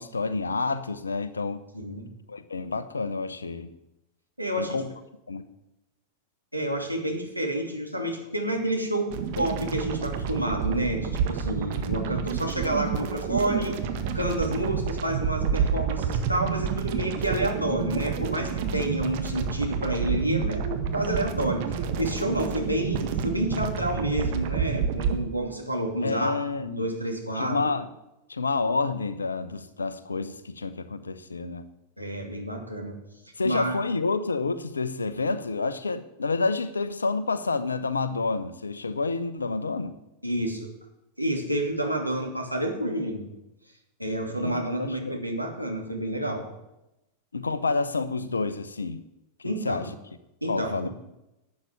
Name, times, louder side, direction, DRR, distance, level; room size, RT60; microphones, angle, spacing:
voice 1, 0.0-1.6 2.3-3.7 4.6-4.9 5.3-5.5 26.0-26.9 27.3-27.9 28.3-31.7 33.4-40.0 44.3-45.2 47.3-49.0 49.4-49.9 50.5-50.9, left 3 dB, 75° left, 13 dB, 1.0 m, -29 dB
voice 2, 1.7-2.1 4.4-4.8 6.5-13.8 14.1-27.7 32.0-33.0 33.4-33.8 40.2-40.7 41.2-43.3 44.0-46.5 49.4-49.9 50.4-50.9, right 1 dB, 90° right, 2 dB, 2.6 m, -29 dB
sound 1, 9.1-25.2, right 7 dB, 50° right, 1.6 m, -29 dB
12.0 x 8.7 x 9.4 m, 0.91 s
figure-of-eight pair, 90°, 0 cm